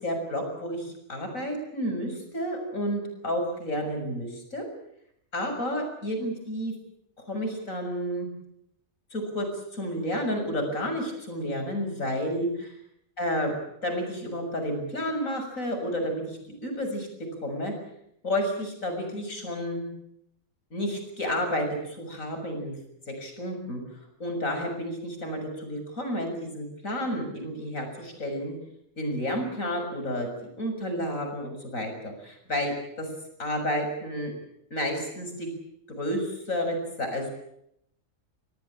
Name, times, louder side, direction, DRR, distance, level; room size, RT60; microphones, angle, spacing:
voice 1, 0.0-4.6 5.3-6.7 7.3-8.3 9.1-9.5 9.7-12.8 13.2-13.5 13.8-17.1 17.4-17.7 18.2-19.9 20.7-22.8 23.2-23.8 24.2-28.5 29.0-30.3 30.6-33.1 33.4-34.3 34.7-35.5 35.9-37.3, equal, 55° left, 4 dB, 7.2 m, -31 dB
26.5 x 18.5 x 8.8 m, 0.76 s
omnidirectional pair, 1.6 m